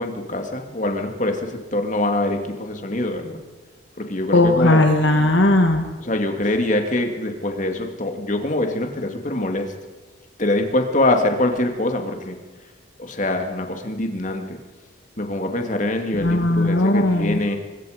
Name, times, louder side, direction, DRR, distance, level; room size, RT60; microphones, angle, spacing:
voice 1, 0.0-3.4 4.0-4.8 6.0-9.7 10.4-12.4 13.0-14.6 15.2-17.6, left 1 dB, 40° left, 4 dB, 2.3 m, -24 dB
voice 2, 4.3-5.8 16.2-17.4, left 2 dB, 65° left, 4 dB, 1.6 m, -17 dB
24.5 x 22.0 x 5.1 m, 1.3 s
head